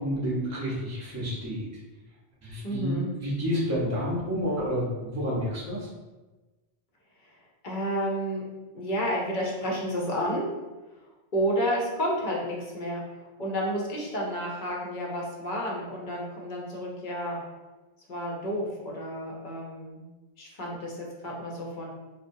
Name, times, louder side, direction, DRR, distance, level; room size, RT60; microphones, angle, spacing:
voice 1, 0.0-1.7 2.4-5.9, equal, 20° right, -7 dB, 0.5 m, -29 dB
voice 2, 2.6-3.1 7.6-8.4 8.7-10.5 11.3-13.0 13.4-17.4 18.1-20.1 20.4-21.9, equal, 55° left, -3 dB, 0.6 m, -30 dB
2.5 x 2.1 x 2.6 m, 1.2 s
omnidirectional pair, 1.1 m